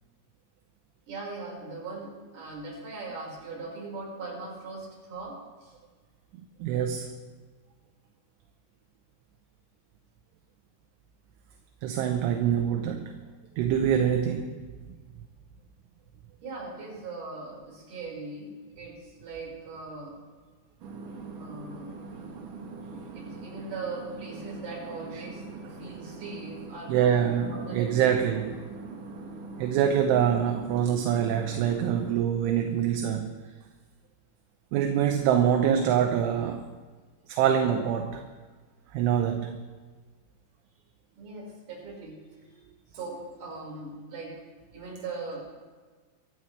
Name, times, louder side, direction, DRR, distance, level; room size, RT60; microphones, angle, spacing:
voice 1, 1.1-5.7 16.4-20.3 21.4-21.9 23.1-28.2 41.2-42.3 42.9-44.4 44.7-45.6, right 3 dB, 40° right, -3 dB, 6.2 m, -40 dB
voice 2, 6.6-7.1 11.8-13.3 13.6-14.6 25.1-25.2 26.9-28.6 29.6-33.3 34.7-36.7 37.3-38.2 38.9-39.6, right 9 dB, 80° right, 5 dB, 3.1 m, -25 dB
sound 1, 20.8-32.1, right 3 dB, 60° right, 2.3 m, -42 dB
24.0 x 14.5 x 3.3 m, 1.4 s
omnidirectional pair, 5.8 m